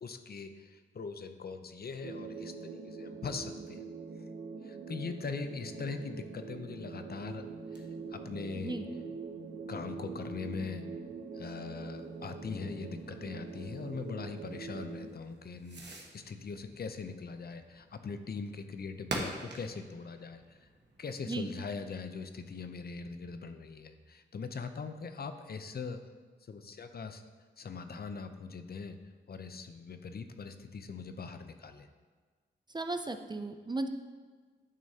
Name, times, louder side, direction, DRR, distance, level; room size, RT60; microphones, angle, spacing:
voice 1, 0.0-3.8 4.6-8.8 9.7-10.9 11.3-20.7 21.0-26.0 26.4-27.2 27.6-29.0 29.3-31.9, left 5 dB, 50° left, 8 dB, 0.6 m, -41 dB
sound 1, 2.0-15.1, right 4 dB, 90° right, 0.7 m, -44 dB
Fireworks, 7.0-21.6, right 2 dB, 65° right, 1.3 m, -48 dB
voice 2, 8.6-8.9 21.3-21.5 32.7-33.9, right 2 dB, 20° right, 7 dB, 0.4 m, -35 dB
10.5 x 6.3 x 2.8 m, 1.5 s
wide cardioid pair, 90°, 20 cm